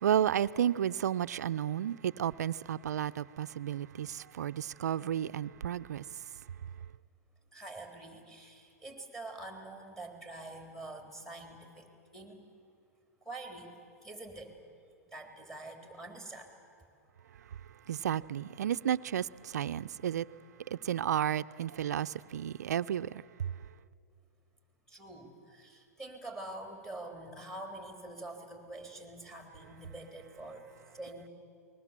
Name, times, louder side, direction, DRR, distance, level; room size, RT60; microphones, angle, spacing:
voice 1, 0.0-6.0 17.9-20.3 20.7-23.5, right 10 dB, 75° right, 0.6 m, -32 dB
voice 2, 7.5-11.9 12.1-12.4 13.2-13.7 14.0-14.6 15.1-16.5 24.9-31.3, right 2 dB, 5° left, 3.6 m, -46 dB
29.0 x 20.5 x 7.5 m
hypercardioid pair, 120°, 9 cm